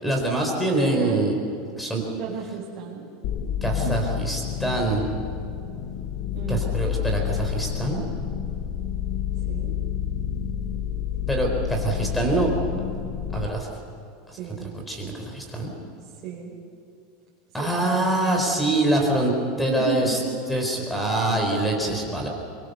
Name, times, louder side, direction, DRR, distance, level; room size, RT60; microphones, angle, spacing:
voice 1, 0.0-1.3 1.8-2.0 3.6-5.0 6.5-8.0 11.3-12.5 13.3-13.7 14.3-14.4 14.9-15.7 17.5-20.2 20.5-22.3, right 2 dB, 5° left, 1 dB, 4.6 m, -24 dB
voice 2, 0.8-1.2 2.2-3.1 3.8-4.0 6.3-6.8 9.5-9.7 14.4-14.7 16.0-16.6 17.6-18.5 19.7-20.4, right 8 dB, 40° right, -7 dB, 4.9 m, -33 dB
sound 1, 3.2-13.5, left 10 dB, 50° left, 1.1 m, -29 dB
23.5 x 23.5 x 6.9 m, 2.6 s
supercardioid pair, 155°, 0 cm